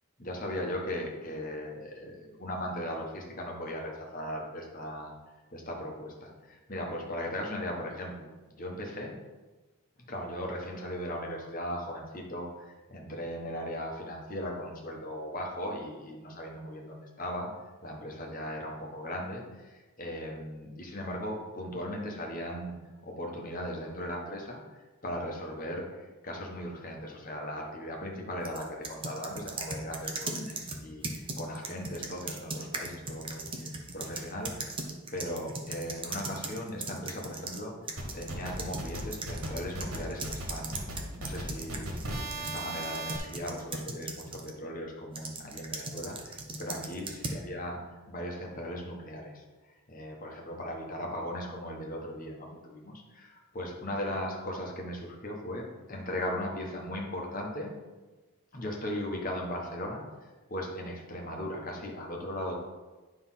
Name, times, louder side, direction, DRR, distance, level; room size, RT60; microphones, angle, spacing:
voice 1, 0.2-5.1 5.5-8.3 8.6-9.1 10.1-17.5 17.8-22.7 23.0-24.6 25.0-25.9 26.2-34.7 35.1-37.7 38.1-40.8 41.2-41.8 42.3-47.8 48.1-49.4 49.9-57.7 58.5-62.5, left 1 dB, 40° left, 0 dB, 1.3 m, -38 dB
sound 1, 28.4-37.6 37.9-44.6 45.2-47.4, right 3 dB, 25° right, 0.7 m, -39 dB
sound 2, 38.0-43.2, right 1 dB, 75° right, 1.6 m, -37 dB
9.4 x 3.5 x 5.8 m, 1.2 s
head